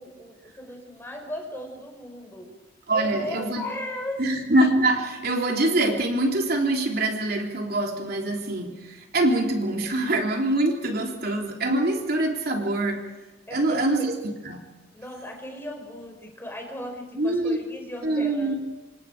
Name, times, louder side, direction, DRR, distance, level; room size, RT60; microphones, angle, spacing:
voice 1, 0.0-2.5 2.9-4.2 13.5-14.1 14.9-18.6, left 1 dB, 15° left, 2 dB, 5.3 m, -36 dB
voice 2, 2.9-3.6 4.2-13.0 13.5-14.6 17.2-17.6 18.0-18.5, right 2 dB, 55° right, 1 dB, 3.4 m, -24 dB
27.0 x 26.5 x 4.9 m, 1.1 s
head